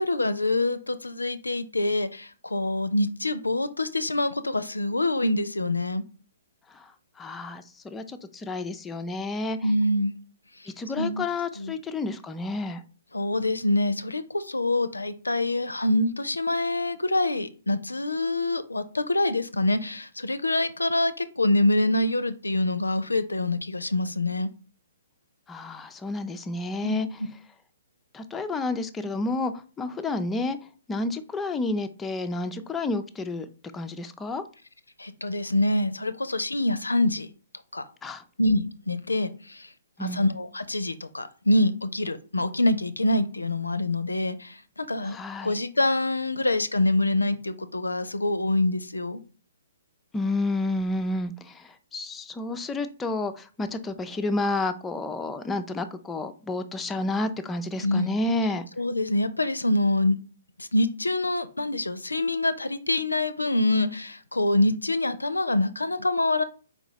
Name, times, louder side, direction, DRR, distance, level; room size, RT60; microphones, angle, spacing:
voice 1, 0.0-6.0 9.6-10.1 11.0-11.3 11.6-11.7 13.1-24.5 26.8-27.0 35.0-37.3 37.7-37.8 38.4-39.7 40.0-45.2 45.4-49.2 57.8-58.1 58.8-60.2 60.6-66.4, left 2 dB, 85° left, 0.4 m, -25 dB
voice 2, 7.2-9.6 10.8-12.8 25.5-27.1 28.1-29.5 29.8-30.6 30.9-33.5 33.7-34.4 38.0-38.2 40.0-40.2 45.0-45.5 50.1-51.6 51.9-58.6, left 2 dB, 10° left, 0.4 m, -30 dB
4.5 x 3.9 x 2.7 m
figure-of-eight pair, 125°, 0 cm